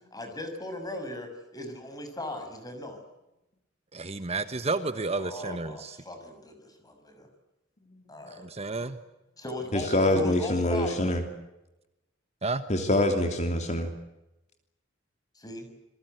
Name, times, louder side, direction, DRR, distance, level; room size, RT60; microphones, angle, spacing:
voice 1, 0.1-3.0 5.2-7.3 8.1-8.4 9.4-11.2 15.3-15.7, left 2 dB, 20° left, 6 dB, 6.6 m, -38 dB
voice 2, 3.9-6.0 8.3-9.0 12.4-12.6, right 3 dB, 35° right, 10 dB, 1.3 m, -31 dB
voice 3, 9.7-11.2 12.7-13.9, left 1 dB, 40° left, 5 dB, 3.1 m, -25 dB
28.0 x 22.0 x 8.0 m, 0.93 s
head